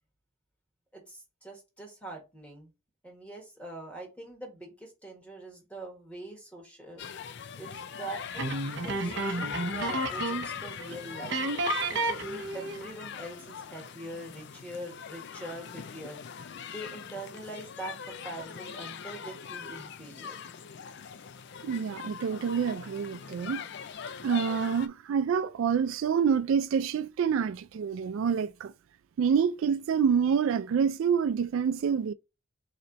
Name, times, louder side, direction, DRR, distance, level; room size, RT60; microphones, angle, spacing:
voice 1, 0.9-2.7 3.0-7.1 7.6-8.5 8.8-11.4 11.9-16.2 16.7-20.4, right 2 dB, 5° left, 1.5 m, -43 dB
sound 1, 7.0-24.9, left 6 dB, 55° left, 0.4 m, -41 dB
sound 2, 8.4-10.6 10.8-10.9 11.3-12.9, right 2 dB, 55° right, 0.8 m, -31 dB
voice 2, 21.6-23.6 24.2-28.7 29.2-32.1, right 7 dB, 70° right, 0.3 m, -27 dB
4.0 x 3.2 x 4.0 m
head